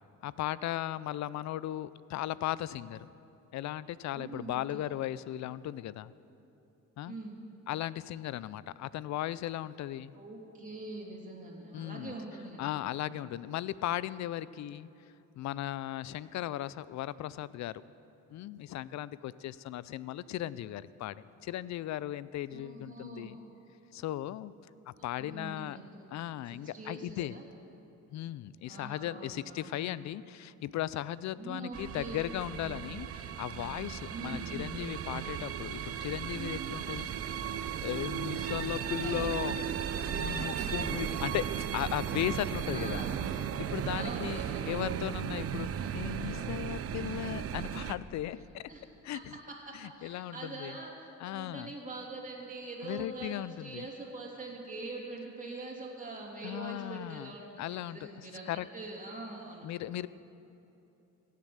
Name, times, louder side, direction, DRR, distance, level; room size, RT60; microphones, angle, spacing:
voice 1, 0.2-3.1 3.5-6.1 7.0-7.1 7.7-10.1 11.7-12.2 12.6-14.9 15.4-17.8 18.3-23.4 23.9-24.5 24.9-25.8 26.1-27.4 28.1-37.1 37.8-39.6 40.1-43.0 43.6-44.4 44.7-48.7 49.0-49.3 49.7-50.8 51.2-51.7 52.8-53.8 56.4-58.7 59.6-60.1, left 13 dB, 65° left, 18 dB, 0.5 m, -37 dB
voice 2, 4.1-4.8 7.0-7.4 10.1-13.2 22.5-23.3 25.0-25.8 26.5-27.4 28.7-29.8 31.3-32.2 34.1-34.5 38.8-39.3 40.4-40.7 42.6-43.1 43.9-44.8 48.7-48.8 49.5-59.7, right 2 dB, 25° right, -2 dB, 3.1 m, -44 dB
sound 1, 31.7-47.9, right 8 dB, 50° right, 0.6 m, -36 dB
16.5 x 7.5 x 7.4 m, 2.9 s
cardioid pair, 90°, 30 cm